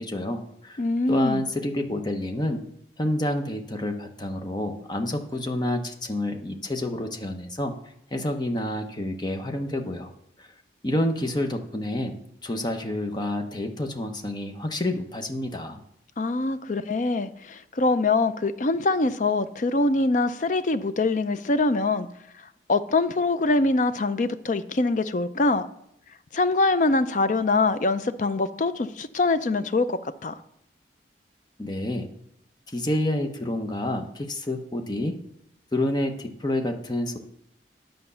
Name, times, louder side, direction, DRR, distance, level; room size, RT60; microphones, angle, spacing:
voice 1, 0.0-0.8 1.1-2.6 3.0-7.7 8.1-10.1 10.4-10.5 10.8-12.1 12.4-15.8 31.6-32.1 32.7-35.1 35.7-37.2, left 1 dB, 25° left, 5 dB, 0.9 m, -28 dB
voice 2, 0.8-1.4 16.2-22.1 22.7-25.7 26.3-30.4, left 3 dB, 45° left, 12 dB, 0.5 m, -24 dB
9.9 x 5.2 x 6.9 m, 0.74 s
head